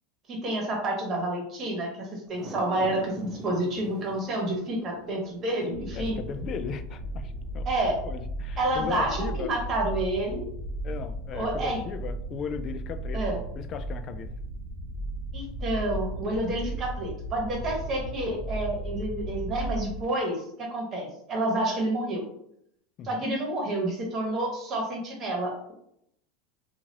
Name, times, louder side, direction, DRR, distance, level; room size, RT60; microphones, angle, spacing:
voice 1, 0.3-6.2 7.6-8.0 8.6-10.5 11.3-11.8 13.1-13.4 15.3-22.2 23.0-25.7, right 1 dB, 35° right, 0 dB, 1.2 m, -29 dB
sound 1, 2.3-8.8 9.2-9.3, right 2 dB, 15° right, 0.5 m, -46 dB
sound 2, 5.7-20.1, right 1 dB, 80° right, 0.8 m, -35 dB
voice 2, 5.9-7.7 7.9-9.5 10.8-13.2 13.6-14.3 23.0-23.3, left 7 dB, 40° left, 10 dB, 0.3 m, -37 dB
2.9 x 2.5 x 2.9 m, 0.72 s
supercardioid pair, 115°, 0 cm